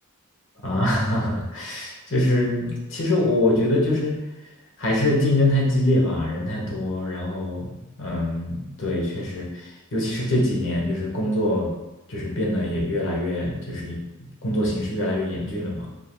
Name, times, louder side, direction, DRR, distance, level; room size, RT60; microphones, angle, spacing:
voice 1, 0.6-4.2 4.8-11.7 12.1-15.9, left 1 dB, 60° left, -2 dB, 1.1 m, -24 dB
5.0 x 3.5 x 2.3 m, 1.0 s
head